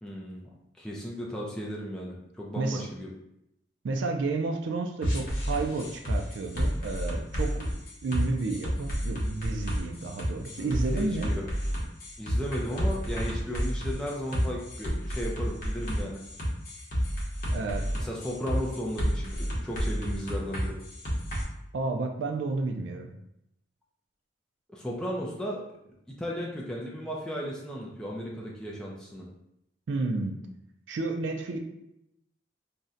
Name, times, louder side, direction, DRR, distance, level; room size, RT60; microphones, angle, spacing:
voice 1, 0.0-3.1 10.6-11.5 12.2-16.2 18.0-20.8 24.7-25.6 26.1-29.3, equal, 5° left, -4 dB, 0.4 m, -35 dB
voice 2, 2.6-2.9 3.8-11.3 17.5-17.9 21.7-23.2 29.9-30.4 30.9-31.6, right 3 dB, 90° right, 3 dB, 0.4 m, -31 dB
sound 1, 5.0-21.4, equal, 55° left, 0.8 m, -30 dB
2.7 x 2.1 x 3.6 m, 0.81 s
head